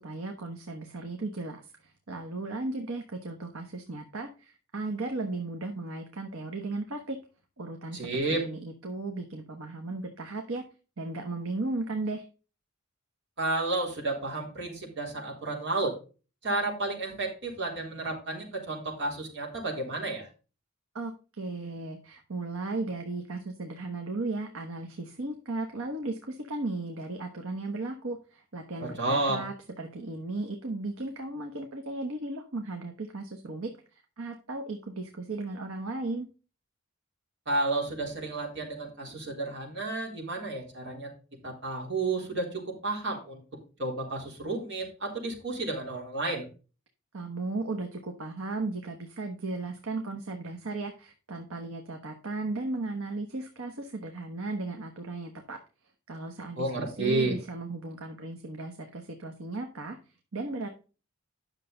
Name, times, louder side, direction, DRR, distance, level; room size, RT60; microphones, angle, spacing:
voice 1, 0.0-7.2 7.6-10.6 11.0-12.2 20.9-36.3 47.1-55.6 56.1-60.0 60.3-60.7, right 2 dB, 75° right, 4 dB, 1.2 m, -36 dB
voice 2, 7.9-8.4 13.4-15.9 16.4-20.3 28.8-29.4 37.5-41.1 41.4-43.4 43.8-46.5 56.6-57.3, right 2 dB, 60° right, -1 dB, 3.6 m, -31 dB
10.0 x 6.5 x 3.9 m, 0.34 s
head